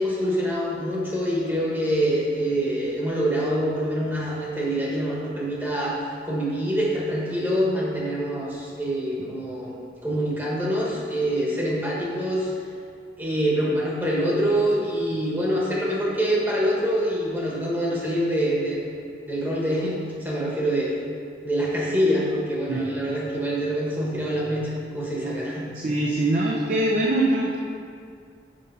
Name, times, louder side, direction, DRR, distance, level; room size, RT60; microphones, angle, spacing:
voice 1, 0.0-9.7 10.0-12.5 13.2-18.8 19.3-20.9 21.4-25.7, equal, 10° right, -5 dB, 1.2 m, -25 dB
voice 2, 25.7-27.6, right 1 dB, 45° right, -3 dB, 0.7 m, -23 dB
6.7 x 5.3 x 5.5 m, 2.3 s
head